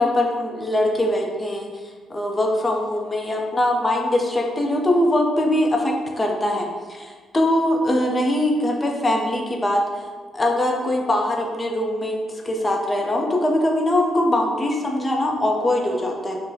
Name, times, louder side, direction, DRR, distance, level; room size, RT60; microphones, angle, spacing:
voice 1, 0.0-1.7 2.1-10.1 10.3-16.4, left 1 dB, 20° left, 1 dB, 0.5 m, -22 dB
3.7 x 2.1 x 2.7 m, 1.5 s
cardioid pair, 90°, 0 cm